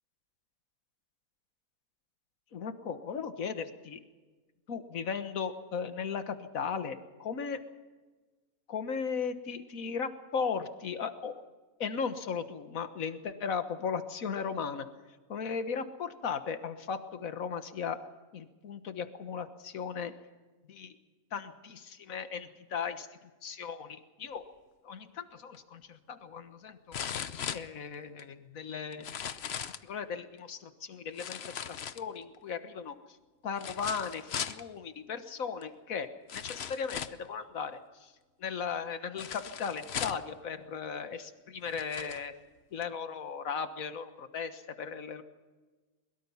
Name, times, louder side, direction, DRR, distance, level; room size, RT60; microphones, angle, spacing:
voice 1, 2.5-4.0 4.7-7.6 8.7-11.4 11.8-14.9 15.3-18.0 18.3-20.1 20.7-20.9 21.3-23.1 23.4-24.5 24.8-29.1 29.8-33.0 33.4-38.1 38.4-42.3 42.7-45.2, left 6 dB, 75° left, 9 dB, 1.7 m, -37 dB
sound 1, 25.5-25.6 26.9-28.2 28.9-29.9 31.2-32.4 33.6-34.6 35.6-35.7 36.3-37.3 39.2-40.3 41.1-41.2 41.6-42.2 42.8-42.9, left 8 dB, 55° left, 1.0 m, -38 dB
22.5 x 22.0 x 5.7 m, 1.3 s
omnidirectional pair, 1.4 m